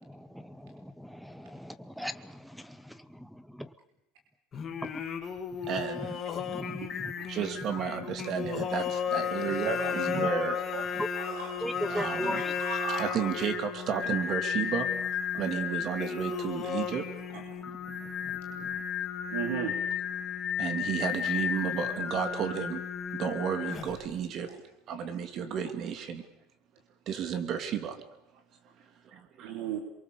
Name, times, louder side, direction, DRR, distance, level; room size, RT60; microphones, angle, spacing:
voice 1, 0.0-3.7 4.8-5.0 5.9-6.1 6.4-7.1 8.0-8.1 8.6-8.7 10.1-10.3 11.0-11.1 11.6-12.5 17.9-18.8, equal, ahead, 10 dB, 0.9 m, -39 dB
Singing, 4.5-24.1, left 7 dB, 30° left, 2.6 m, -34 dB
voice 2, 5.7-6.2 7.3-10.6 11.9-12.4 13.0-14.9 15.4-17.1 20.6-22.8 23.1-24.6 24.9-26.2 27.1-28.0 28.6-29.6, right 8 dB, 45° right, 8 dB, 2.9 m, -33 dB
voice 3, 9.6-9.9 10.2-10.3 10.7-11.6 12.3-13.2 15.3-15.4 16.2-16.7 17.3-17.4 19.3-19.8 24.5-24.6 29.4-29.8, right 6 dB, 85° right, 3 dB, 3.0 m, -37 dB
28.0 x 23.0 x 7.0 m, 0.82 s
supercardioid pair, 130°, 0 cm